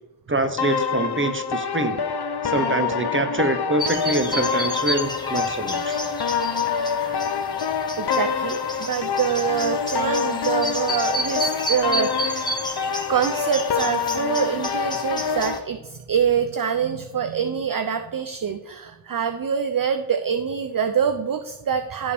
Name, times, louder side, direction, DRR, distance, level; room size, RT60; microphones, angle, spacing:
voice 1, 0.3-2.0 2.4-6.0, right 2 dB, 25° right, 8 dB, 1.0 m, -25 dB
sound 1, 0.6-15.6, left 6 dB, 55° left, 0.7 m, -26 dB
sound 2, 3.8-15.6, equal, 10° left, 1.3 m, -32 dB
voice 2, 7.7-12.5 13.1-22.1, right 7 dB, 45° right, 8 dB, 0.6 m, -25 dB
14.5 x 5.1 x 3.4 m, 1.0 s
wide cardioid pair, 50°, 48 cm